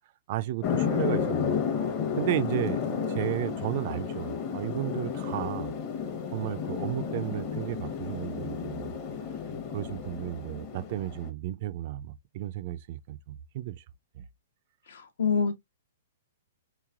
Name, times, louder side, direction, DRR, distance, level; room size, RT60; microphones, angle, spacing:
voice 1, 0.3-1.6 2.2-2.8 3.1-5.8 6.3-8.9 9.7-13.8 14.1-14.2, right 14 dB, 50° right, 0.3 m, -33 dB
sound 1, 0.6-11.3, left 7 dB, 35° left, 0.9 m, -32 dB
voice 2, 14.9-15.5, left 5 dB, 75° left, 0.9 m, -26 dB
3.4 x 3.1 x 2.4 m
hypercardioid pair, 140°, 0 cm